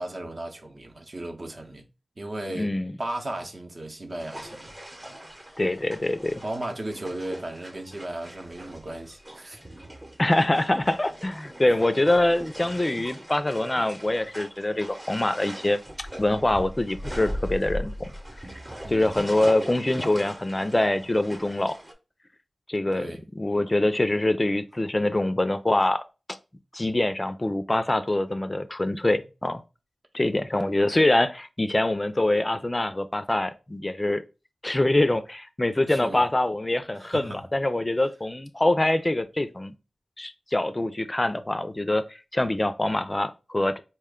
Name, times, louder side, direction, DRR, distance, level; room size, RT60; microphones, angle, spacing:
voice 1, 0.0-1.9 2.2-2.7 3.0-4.7 5.1-5.2 6.4-9.6 11.6-11.8 12.6-12.7 18.8-19.2 22.9-23.2 35.9-36.3 36.9-37.4, right 1 dB, 55° right, 0.8 m, -35 dB
voice 2, 2.6-2.9 5.6-6.4 10.2-18.1 18.9-21.8 22.7-23.1 23.4-26.0 26.3-26.4 26.7-29.6 30.1-34.2 34.6-39.7 40.2-43.8, left 1 dB, 30° left, 0.4 m, -24 dB
sound 1, 4.2-21.9, equal, 25° right, 0.9 m, -40 dB
4.2 x 2.2 x 3.5 m
wide cardioid pair, 55°, 0 cm